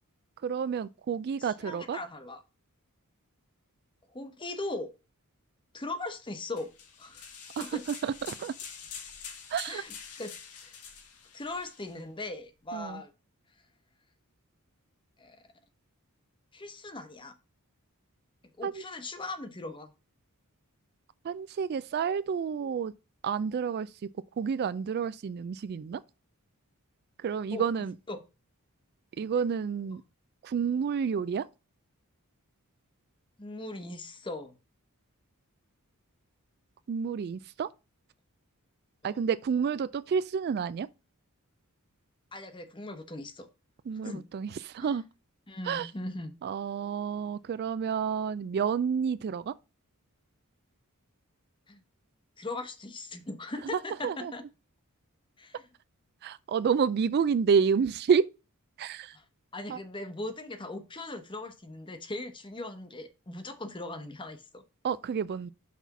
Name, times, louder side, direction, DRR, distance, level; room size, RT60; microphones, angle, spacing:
voice 1, 0.4-2.0 7.6-8.5 9.5-9.8 12.7-13.0 18.6-18.8 21.2-22.9 23.2-23.9 24.4-26.0 27.2-27.9 29.2-30.0 30.4-31.5 36.9-37.7 39.0-40.9 43.9-45.0 45.6-45.9 46.4-49.5 53.7-54.3 56.2-58.2 58.8-59.2 59.7-59.8 64.8-65.5, right 6 dB, 45° right, 0.3 m, -29 dB
voice 2, 1.4-2.4 4.1-4.9 5.7-6.7 7.0-7.8 9.7-10.3 10.6-10.8 11.3-13.1 15.2-15.4 16.5-17.3 18.6-19.9 27.5-27.6 28.1-28.2 33.4-34.6 39.0-39.2 42.3-43.5 44.0-44.3 44.8-45.0 45.5-46.3 51.7-51.8 52.4-54.4 55.4-55.6 59.1-59.2 59.5-64.6, left 2 dB, 20° left, 0.9 m, -39 dB
sound 1, 6.6-12.0, left 6 dB, 85° left, 1.7 m, -45 dB
6.0 x 4.2 x 5.9 m
head